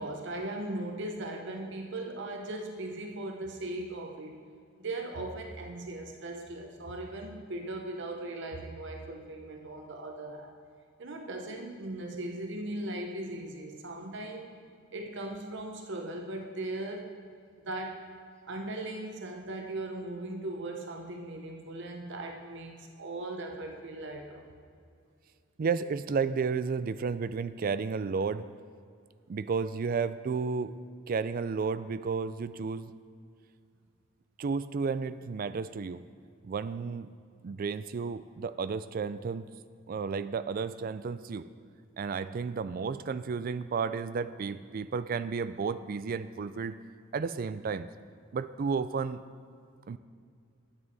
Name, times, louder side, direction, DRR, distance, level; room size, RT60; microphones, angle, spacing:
voice 1, 0.0-4.4 4.8-10.5 11.0-14.5 14.9-17.1 17.6-18.1 18.4-24.5, right 2 dB, 60° right, 2 dB, 0.9 m, -38 dB
voice 2, 25.6-28.5 29.3-30.7 31.1-32.9 34.4-36.0 36.4-37.1 37.4-39.5 39.9-41.5 42.0-46.8 47.1-47.9 48.3-49.2 49.9-50.0, right 5 dB, 45° right, 13 dB, 0.3 m, -32 dB
10.5 x 9.6 x 4.0 m, 2.3 s
head